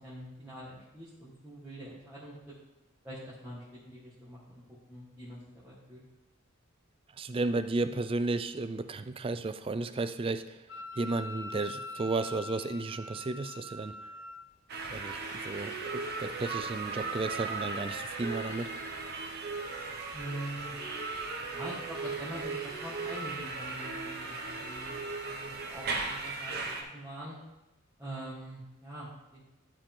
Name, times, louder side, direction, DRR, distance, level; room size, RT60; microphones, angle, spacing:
voice 1, 0.0-2.5 3.0-4.6 4.9-6.0 20.1-20.7 21.5-24.9 25.2-26.6 26.9-27.4 28.0-29.4, right 1 dB, 10° right, -11 dB, 1.8 m, -44 dB
voice 2, 7.2-10.6 11.0-14.0 14.9-18.7, right 3 dB, 25° right, 11 dB, 0.4 m, -33 dB
Wind instrument woodwind instrument, 10.7-14.4, left 2 dB, 70° left, 0.8 m, -43 dB
sound 1, 14.7-26.8, right 3 dB, 50° right, 1.1 m, -37 dB
11.5 x 4.9 x 3.7 m, 0.99 s
head